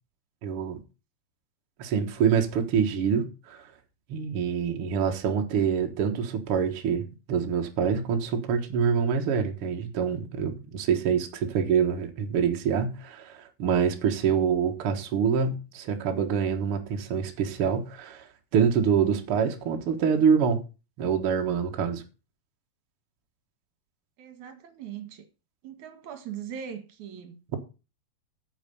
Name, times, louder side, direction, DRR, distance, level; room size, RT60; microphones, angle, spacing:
voice 1, 0.4-0.8 1.8-3.7 4.1-7.0 7.3-18.3 18.5-20.6 21.0-22.0, right 7 dB, 75° right, 1.3 m, -26 dB
voice 2, 24.2-25.2 25.6-27.4, right 8 dB, 55° right, 2.5 m, -40 dB
9.0 x 7.4 x 6.8 m
omnidirectional pair, 4.8 m